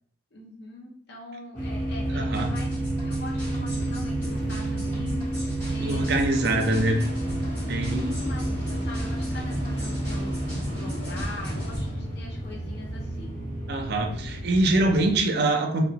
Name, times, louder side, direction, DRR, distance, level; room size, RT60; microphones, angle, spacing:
voice 1, 0.3-2.7 3.0-6.5 6.7-7.2 7.9-10.4 10.7-13.4, left 2 dB, 65° left, -2 dB, 0.6 m, -42 dB
sound 1, 1.5-15.2, right 1 dB, 45° left, 0.9 m, -31 dB
voice 2, 2.1-2.5 5.8-7.0 7.7-8.0 13.7-15.8, right 2 dB, 65° right, 4 dB, 0.4 m, -24 dB
sound 2, 2.3-11.9, equal, 15° left, 1.5 m, -36 dB
sound 3, 5.7-12.4, right 1 dB, 30° left, 1.4 m, -42 dB
2.8 x 2.2 x 2.8 m, 0.62 s
head